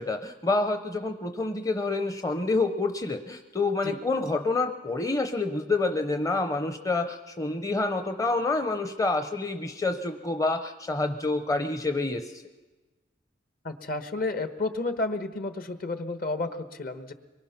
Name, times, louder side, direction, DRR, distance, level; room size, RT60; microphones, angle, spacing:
voice 1, 0.0-12.4, left 3 dB, 20° left, 6 dB, 0.7 m, -28 dB
voice 2, 13.6-17.1, left 2 dB, 55° left, 8 dB, 1.3 m, -31 dB
24.0 x 22.5 x 5.8 m, 1.2 s
head